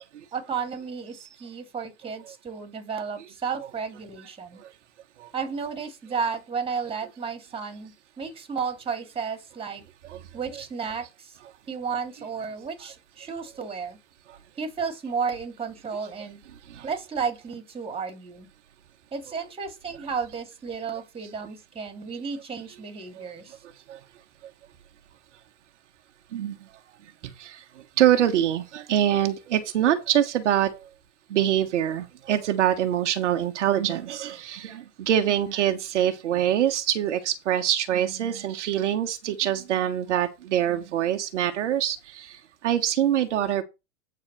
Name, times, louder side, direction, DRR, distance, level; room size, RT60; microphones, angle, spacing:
voice 1, 0.3-4.6 5.3-9.8 10.3-11.4 11.7-14.0 14.6-16.4 16.8-18.5 19.1-23.6 40.1-40.2, right 6 dB, 15° right, 2.3 m, -33 dB
voice 2, 26.3-26.7 27.2-30.9 31.3-43.6, right 11 dB, 65° right, 1.3 m, -25 dB
8.7 x 4.1 x 6.6 m
hypercardioid pair, 110°, 39 cm